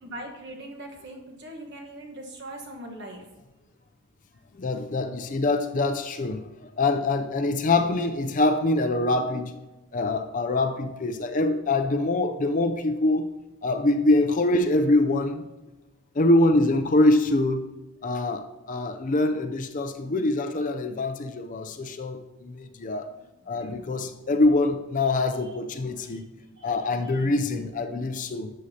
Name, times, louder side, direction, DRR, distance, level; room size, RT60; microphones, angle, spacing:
voice 1, 0.0-3.3 22.9-23.0 23.5-23.9 26.0-26.2 26.6-26.7, right 1 dB, 50° right, 1 dB, 1.3 m, -41 dB
voice 2, 4.5-9.6 9.9-13.3 13.6-15.4 16.1-17.7 18.0-23.1 23.5-26.2 26.6-28.5, left 2 dB, 35° left, 8 dB, 0.4 m, -24 dB
11.5 x 7.5 x 2.8 m, 1.1 s
head